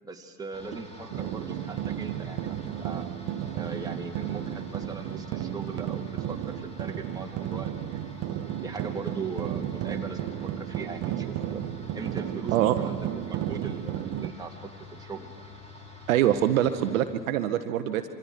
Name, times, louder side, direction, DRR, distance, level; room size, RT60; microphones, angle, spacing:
voice 1, 0.0-3.1 3.5-8.2 8.6-11.6 11.9-15.4, right 4 dB, 10° right, 1 dB, 2.1 m, -40 dB
sound 1, 0.5-17.1, left 3 dB, 15° left, 3.2 m, -47 dB
sound 2, 1.1-14.3, right 12 dB, 35° right, 0.9 m, -33 dB
voice 2, 16.1-18.1, right 11 dB, 55° right, 8 dB, 1.2 m, -24 dB
27.0 x 24.0 x 4.7 m, 2.2 s
figure-of-eight pair, 90°, 48 cm